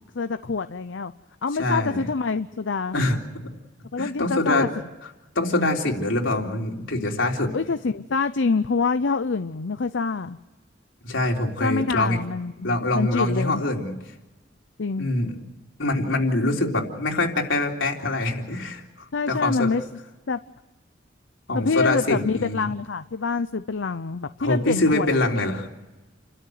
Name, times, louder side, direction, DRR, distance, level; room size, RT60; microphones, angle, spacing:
voice 1, 0.1-1.1 1.4-3.0 3.9-4.7 7.5-10.4 11.6-13.6 14.8-15.1 16.6-16.7 19.1-19.8 20.3-20.4 21.5-25.1, left 4 dB, 70° left, 11 dB, 0.7 m, -26 dB
voice 2, 1.6-2.0 2.9-3.5 4.0-4.7 5.4-7.5 11.0-12.2 12.6-14.0 15.0-15.3 15.8-19.7 21.5-22.7 24.4-25.7, left 2 dB, 85° left, 0 dB, 3.6 m, -24 dB
29.5 x 13.0 x 9.4 m, 1.1 s
head